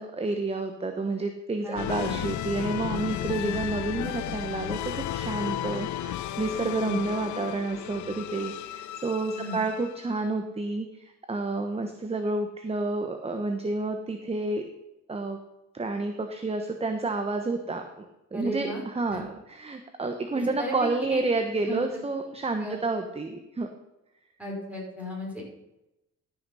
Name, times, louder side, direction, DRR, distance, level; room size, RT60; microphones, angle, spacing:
voice 1, 0.0-14.6 15.1-15.4 15.7-18.1 18.3-23.7, right 3 dB, 20° right, 6 dB, 1.0 m, -30 dB
voice 2, 1.6-2.3 3.3-3.6 6.7-7.0 9.3-9.6 18.3-18.8 19.1-19.2 20.3-20.7 21.1-21.2 21.7-22.0 22.6-22.8 24.4-25.4, equal, 5° right, -3 dB, 5.0 m, -35 dB
sound 1, 1.8-10.2, left 13 dB, 70° left, 0.6 m, -34 dB
13.0 x 6.3 x 5.6 m, 0.93 s
cardioid pair, 90°, 30 cm